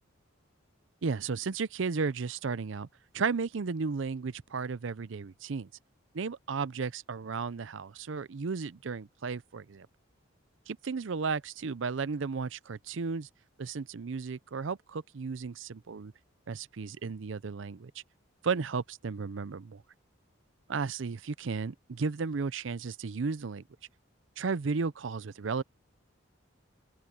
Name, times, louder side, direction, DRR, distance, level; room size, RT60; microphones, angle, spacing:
voice 1, 1.0-2.9 3.1-5.7 6.1-9.9 10.7-13.3 13.6-16.1 16.5-17.9 18.4-19.8 20.7-23.6 24.4-25.6, right 5 dB, 70° right, 0.5 m, -34 dB
open air
head